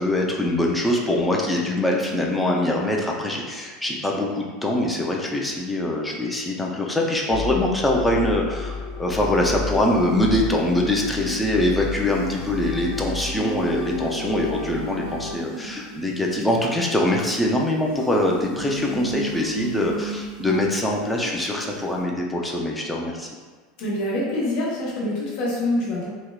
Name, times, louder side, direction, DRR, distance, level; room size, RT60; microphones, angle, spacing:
voice 1, 0.0-23.3, left 1 dB, 10° left, -1 dB, 0.4 m, -23 dB
sound 1, 7.3-15.3, left 4 dB, 45° left, 1.2 m, -33 dB
sound 2, 9.2-17.2 17.9-22.0, right 3 dB, 65° right, 0.5 m, -35 dB
voice 2, 23.8-26.1, left 1 dB, 60° left, -6 dB, 0.8 m, -25 dB
2.7 x 2.1 x 2.3 m, 1.4 s
figure-of-eight pair, 80°, 0 cm